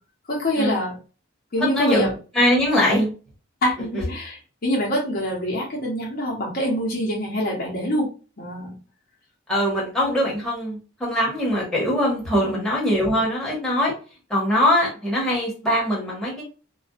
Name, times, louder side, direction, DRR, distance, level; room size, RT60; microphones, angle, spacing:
voice 1, 0.3-1.0 1.5-2.1 3.6-8.1 8.4-8.7 12.4-12.6, equal, 50° left, -3 dB, 0.7 m, -25 dB
voice 2, 1.7-3.1 9.5-13.9 14.3-16.4, left 1 dB, ahead, -6 dB, 1.1 m, -22 dB
2.5 x 2.3 x 2.3 m, 0.35 s
head